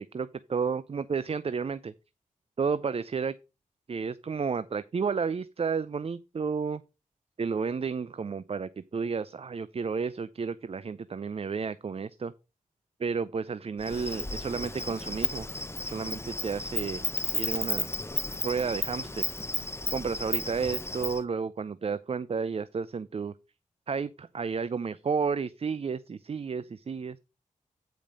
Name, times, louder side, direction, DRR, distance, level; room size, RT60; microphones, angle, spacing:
voice 1, 0.1-1.9 2.6-3.3 3.9-6.8 7.4-12.3 13.0-15.5 15.9-17.0 17.3-17.9 18.4-19.3 19.9-23.3 23.9-27.2, right 5 dB, 45° right, 0.5 m, -32 dB
Insect, 13.8-21.2, left 2 dB, 20° left, 0.8 m, -33 dB
8.8 x 5.1 x 5.2 m
cardioid pair, 60°, 14 cm